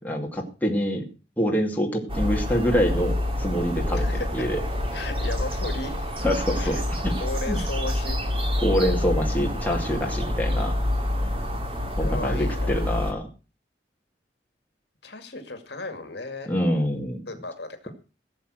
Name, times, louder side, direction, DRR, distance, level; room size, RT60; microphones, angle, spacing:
voice 1, 0.0-1.1 1.4-4.1 4.3-4.6 6.2-7.1 7.5-7.6 8.6-10.8 12.0-13.3 16.5-17.3, equal, 10° left, 0 dB, 2.4 m, -25 dB
sound 1, 2.1-13.1, left 1 dB, 30° right, 2.3 m, -27 dB
voice 2, 3.9-4.4 4.9-6.2 6.6-6.8 7.2-8.2 12.0-12.7 15.0-16.5 17.3-17.9, left 2 dB, 70° left, 7 dB, 2.3 m, -35 dB
17.0 x 7.3 x 6.4 m, 0.34 s
head